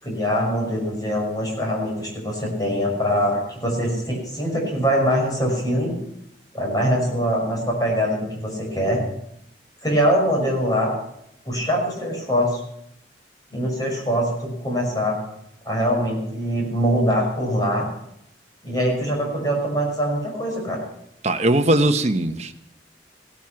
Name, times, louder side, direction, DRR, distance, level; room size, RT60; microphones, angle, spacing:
voice 1, 0.0-6.0 6.5-9.0 9.8-10.9 11.5-12.6 13.5-15.2 15.6-17.9 18.6-20.8, equal, 20° left, -1 dB, 6.0 m, -23 dB
voice 2, 21.2-22.5, right 1 dB, 40° right, 7 dB, 1.2 m, -19 dB
17.0 x 12.5 x 5.9 m, 0.75 s
head